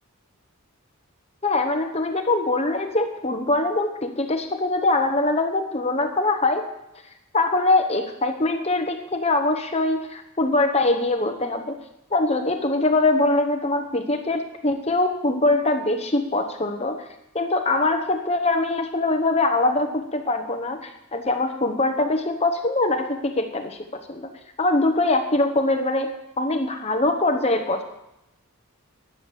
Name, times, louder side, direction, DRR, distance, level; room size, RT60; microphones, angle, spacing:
voice 1, 1.4-6.7 7.3-11.8 12.1-17.0 17.3-24.3 24.6-27.8, left 2 dB, 30° left, 6 dB, 1.1 m, -23 dB
12.5 x 9.9 x 7.4 m, 0.86 s
head